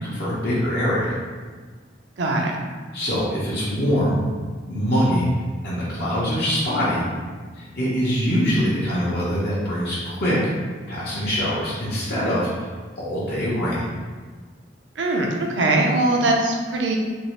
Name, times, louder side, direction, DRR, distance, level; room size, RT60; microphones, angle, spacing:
voice 1, 0.0-1.2 2.9-4.2 4.7-5.3 5.6-7.1 7.5-10.4 10.9-12.7 13.0-13.8, equal, 60° left, -8 dB, 0.7 m, -23 dB
voice 2, 2.2-2.6 15.0-17.0, right 2 dB, 75° right, 0 dB, 0.5 m, -21 dB
2.9 x 2.6 x 3.2 m, 1.5 s
head